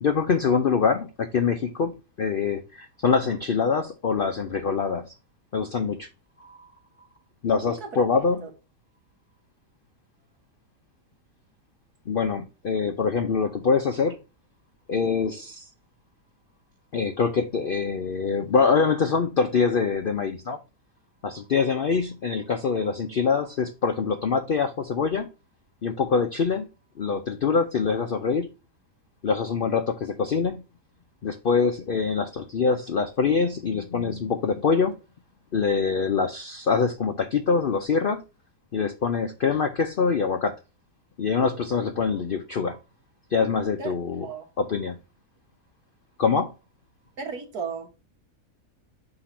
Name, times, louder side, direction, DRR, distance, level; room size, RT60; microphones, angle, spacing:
voice 1, 0.0-1.9 2.2-5.2 5.5-6.1 6.4-6.7 7.4-8.5 12.1-14.2 14.9-15.7 16.9-20.6 21.2-25.3 25.8-26.7 27.0-28.5 29.2-30.6 31.2-35.0 35.5-38.2 38.7-40.5 41.2-42.8 43.3-44.3 44.6-45.0 46.2-46.5, left 5 dB, 65° left, 0.5 m, -24 dB
voice 2, 7.6-8.0 8.4-8.5 43.8-43.9 44.2-44.5 47.2-47.9, right 5 dB, 75° right, 1.9 m, -34 dB
5.8 x 3.9 x 4.9 m
omnidirectional pair, 1.6 m